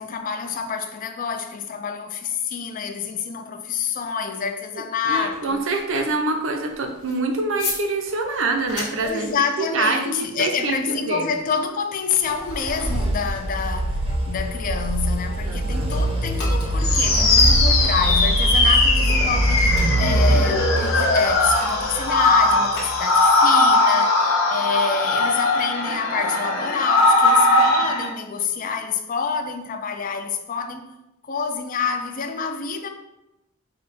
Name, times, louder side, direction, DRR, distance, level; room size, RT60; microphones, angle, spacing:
voice 1, 0.0-5.7 9.0-30.9 31.2-32.9, left 6 dB, 40° left, 0.4 m, -27 dB
sound 1, 5.1-15.6 15.8-23.5, left 3 dB, 55° left, 1.2 m, -39 dB
voice 2, 5.1-9.3 9.6-11.3 15.4-15.9, right 3 dB, 70° right, 0.6 m, -25 dB
sound 2, 12.3-23.1, right 1 dB, 25° right, 0.6 m, -23 dB
sound 3, 16.8-28.1, left 2 dB, 75° left, 0.9 m, -19 dB
5.1 x 2.2 x 4.1 m
head